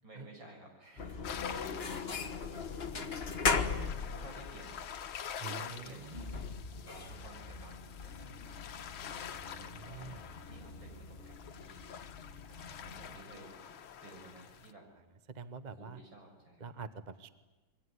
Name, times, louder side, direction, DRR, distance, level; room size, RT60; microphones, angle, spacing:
voice 1, 0.0-3.2 3.8-4.9 5.4-6.4 6.7-8.8 9.4-10.1 10.5-12.0 12.5-13.6 14.0-14.9 15.7-16.7, right 2 dB, 65° right, 2 dB, 7.0 m, -54 dB
sound 1, 1.0-13.2, left 5 dB, 35° left, 1.3 m, -39 dB
Soft Wave for relaxation - Japan Setouchi, 1.2-14.7, left 8 dB, 80° left, 2.0 m, -47 dB
voice 2, 5.4-6.2 9.4-10.2 15.3-16.0 16.6-17.3, right 5 dB, 30° right, 11 dB, 0.8 m, -46 dB
26.0 x 22.5 x 9.7 m, 1.2 s
omnidirectional pair, 2.2 m